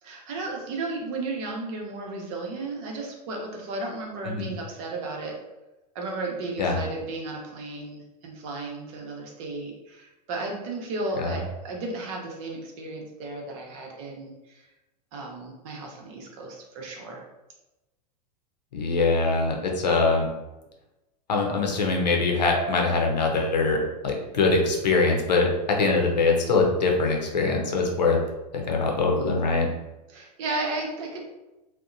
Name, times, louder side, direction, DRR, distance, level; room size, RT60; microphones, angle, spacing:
voice 1, 0.0-5.4 5.9-14.6 15.1-17.2 29.2-29.3 30.1-31.2, right 2 dB, 50° right, 0 dB, 0.8 m, -34 dB
voice 2, 18.7-20.3 21.3-25.5 25.8-28.2 28.7-29.7, left 3 dB, 85° left, 0 dB, 0.7 m, -23 dB
2.7 x 2.1 x 2.5 m, 1.0 s
hypercardioid pair, 100°, 21 cm